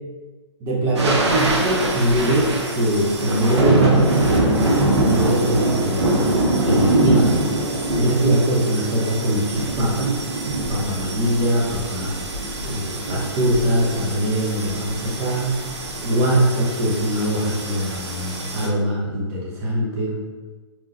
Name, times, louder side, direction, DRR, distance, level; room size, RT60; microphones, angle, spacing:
voice 1, 0.6-6.3 6.6-7.5 8.0-10.1 10.7-12.1 12.6-15.5 16.0-20.2, right 1 dB, 30° right, -3 dB, 1.0 m, -22 dB
sound 1, 1.0-18.7, right 2 dB, 70° right, 1.1 m, -23 dB
4.6 x 3.7 x 2.8 m, 1.3 s
figure-of-eight pair, 125°, 15 cm